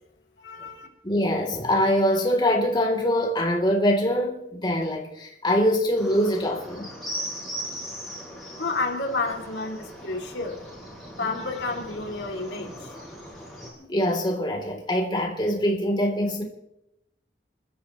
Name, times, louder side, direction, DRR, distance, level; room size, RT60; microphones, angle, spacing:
voice 1, 0.4-0.9 8.6-10.6 11.2-12.9, left 3 dB, 85° left, 3.0 m, -30 dB
voice 2, 1.0-6.9 13.9-16.4, equal, 25° left, 3.5 m, -23 dB
sound 1, 5.9-13.7, equal, ahead, 6.9 m, -39 dB
29.5 x 13.0 x 3.2 m
head